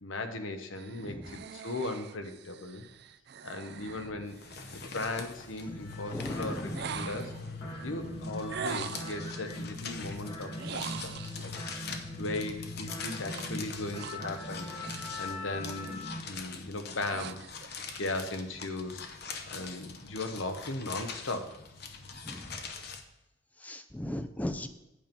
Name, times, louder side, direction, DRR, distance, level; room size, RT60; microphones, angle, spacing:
voice 1, 0.0-2.9 3.4-4.4 4.9-7.3 7.8-11.5 12.2-14.7 15.2-19.1 19.5-21.6, left 2 dB, 75° left, 7 dB, 1.0 m, -37 dB
sound 1, 0.8-5.0 6.7-7.5 8.5-9.3 10.5-11.6 13.3-15.4 15.7-16.1 16.6-17.7, right 7 dB, 55° right, 0.4 m, -43 dB
voice 2, 1.0-1.4 3.8-4.0 6.1-7.1 8.0-8.1 10.0-10.2 22.2-22.6 23.6-24.7, left 1 dB, 10° left, 9 dB, 0.4 m, -38 dB
sound 2, 4.3-23.0, left 5 dB, 50° left, 0.8 m, -44 dB
sound 3, 5.7-16.2, left 2 dB, 25° left, 1.8 m, -41 dB
8.6 x 5.3 x 7.0 m, 0.91 s
head